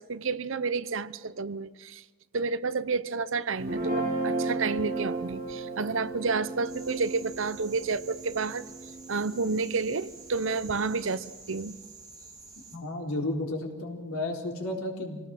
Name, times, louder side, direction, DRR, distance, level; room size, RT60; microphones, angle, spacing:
voice 1, 0.0-2.0 2.3-8.6 9.1-11.8, right 4 dB, 60° right, 15 dB, 0.8 m, -30 dB
Guitar, 3.6-9.9, right 2 dB, 45° right, 5.3 m, -34 dB
sound 1, 6.7-12.8, right 5 dB, 20° right, 2.4 m, -49 dB
voice 2, 12.7-15.3, left 2 dB, 80° left, 0 dB, 4.1 m, -33 dB
26.0 x 18.0 x 6.3 m, 1.3 s
head